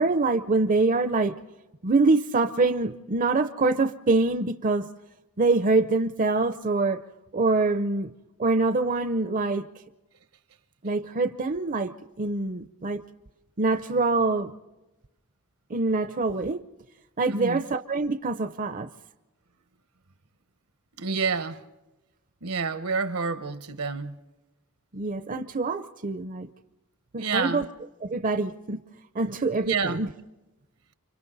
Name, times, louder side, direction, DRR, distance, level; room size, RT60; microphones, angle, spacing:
voice 1, 0.0-1.4 1.8-4.9 5.4-7.0 7.3-8.1 8.4-9.6 10.8-13.0 13.6-14.5 15.7-16.6 17.2-18.9 24.9-26.5 27.1-27.6 28.0-28.8 29.1-30.1, right 3 dB, 35° right, 0.6 m, -25 dB
voice 2, 17.3-17.6 21.0-21.6 22.4-24.2 27.2-27.7 29.6-30.0, right 4 dB, 80° right, 1.2 m, -28 dB
30.0 x 25.0 x 4.0 m
head